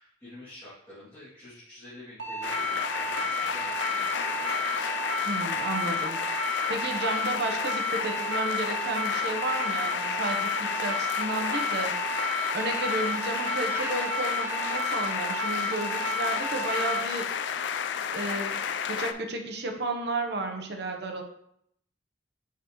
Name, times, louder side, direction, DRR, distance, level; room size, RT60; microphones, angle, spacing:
voice 1, 0.0-4.9, left 2 dB, 15° left, -13 dB, 2.4 m, -48 dB
sound 1, 2.2-17.0, left 1 dB, 85° right, 1.3 m, -32 dB
sound 2, 2.4-19.1, left 7 dB, 80° left, 0.4 m, -32 dB
voice 2, 5.3-6.2 6.7-12.0 12.5-17.3 18.1-21.2, right 2 dB, 65° right, 4 dB, 0.9 m, -32 dB
Laughter, 12.4-16.8, right 2 dB, 10° right, 0.4 m, -44 dB
5.8 x 5.8 x 3.0 m, 0.73 s
head